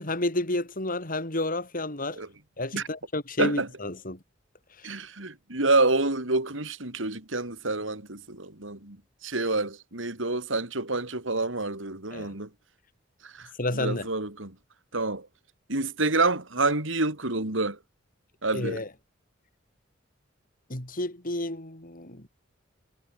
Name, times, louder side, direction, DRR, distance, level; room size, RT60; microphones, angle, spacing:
voice 1, 0.0-2.2 2.6-4.2 4.8-4.9 12.1-12.3 13.6-14.1 18.5-18.9 20.7-22.3, left 1 dB, 45° left, 5.9 m, -31 dB
voice 2, 4.8-9.0 9.2-12.5 13.2-14.5 14.9-15.3 15.7-17.8 18.4-18.8, right 2 dB, 85° right, 4.1 m, -28 dB
head